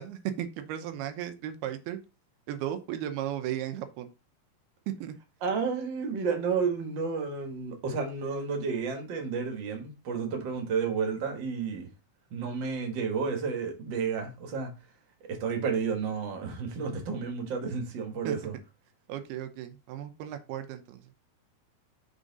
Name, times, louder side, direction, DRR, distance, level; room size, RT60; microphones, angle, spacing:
voice 1, 0.0-2.0 2.5-4.1 5.0-5.1 18.2-18.4 19.1-21.0, right 11 dB, 90° right, 2.8 m, -35 dB
voice 2, 5.4-11.9 12.3-14.7 15.3-18.5, right 5 dB, 55° right, 1.3 m, -31 dB
6.7 x 3.7 x 5.2 m
omnidirectional pair, 4.4 m